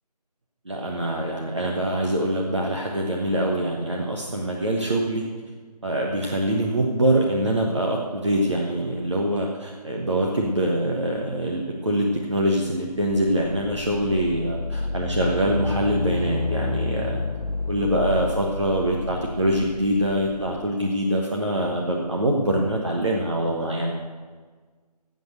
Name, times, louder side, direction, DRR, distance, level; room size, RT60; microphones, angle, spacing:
voice 1, 0.6-5.2 5.8-17.2 17.7-23.9, right 1 dB, 45° right, -1 dB, 1.2 m, -24 dB
sound 1, 12.9-20.7, left 3 dB, 85° left, 0.7 m, -30 dB
13.0 x 8.0 x 6.7 m, 1.5 s
figure-of-eight pair, 175°, 21 cm